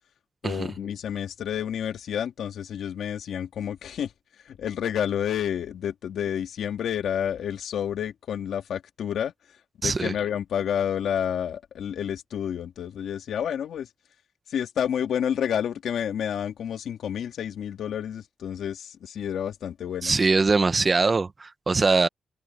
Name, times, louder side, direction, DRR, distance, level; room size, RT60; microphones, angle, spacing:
voice 1, 0.4-4.1 4.5-9.3 9.8-13.9 14.5-20.1, left 9 dB, 85° left, 2.3 m, -29 dB
voice 2, 9.8-10.1 20.0-22.1, right 3 dB, 40° right, 1.4 m, -22 dB
open air
cardioid pair, 65°, 0 cm